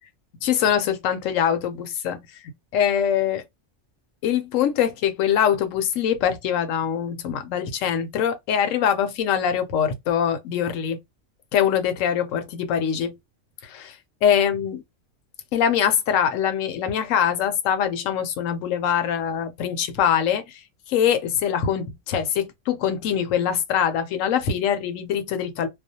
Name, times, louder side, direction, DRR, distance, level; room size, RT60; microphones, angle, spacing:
voice 1, 0.4-2.4 2.7-3.4 4.2-11.0 11.5-13.2 13.6-14.8 15.5-25.7, left 8 dB, 80° left, 1.0 m, -23 dB
2.4 x 2.1 x 2.7 m
omnidirectional pair, 1.3 m